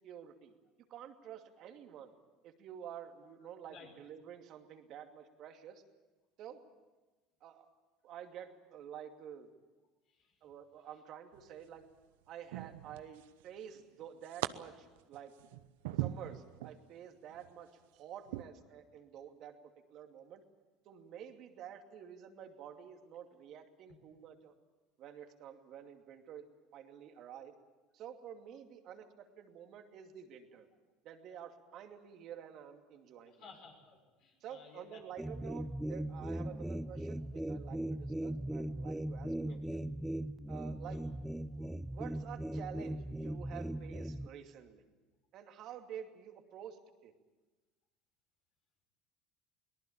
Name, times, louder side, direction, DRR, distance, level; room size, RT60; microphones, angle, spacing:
voice 1, 0.0-0.5 0.9-2.1 2.4-5.8 6.4-6.6 7.4-7.7 8.0-9.5 10.4-11.9 12.3-15.3 16.0-19.6 19.9-20.4 20.8-24.5 25.0-26.5 26.7-27.5 27.9-30.7 31.0-33.5 34.4-39.8 40.5-41.0 41.5-44.8 45.3-47.1, right 9 dB, 60° right, 5 dB, 2.5 m, -50 dB
sound 1, 11.3-11.8 12.5-13.4 13.7-14.5 15.0-16.8 17.3-17.5 18.3-18.4, right 16 dB, 80° right, 0.8 m, -40 dB
voice 2, 33.4-35.0 39.4-39.5 40.9-41.0, left 5 dB, 65° left, 1 dB, 6.2 m, -56 dB
sound 2, 35.2-44.3, right 1 dB, 5° right, 0.7 m, -39 dB
23.0 x 19.0 x 8.7 m, 1.2 s
hypercardioid pair, 85°, 0 cm